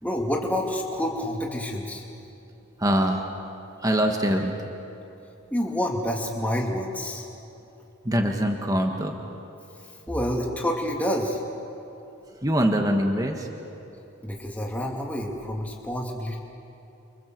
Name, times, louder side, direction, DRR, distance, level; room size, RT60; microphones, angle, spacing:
voice 1, 0.0-2.1 5.5-7.3 10.1-11.4 14.2-16.4, equal, 5° left, -1 dB, 2.8 m, -28 dB
voice 2, 2.8-3.2 3.8-4.5 8.0-9.2 12.4-13.5, equal, 15° right, 2 dB, 1.8 m, -23 dB
30.0 x 24.5 x 7.8 m, 2.9 s
head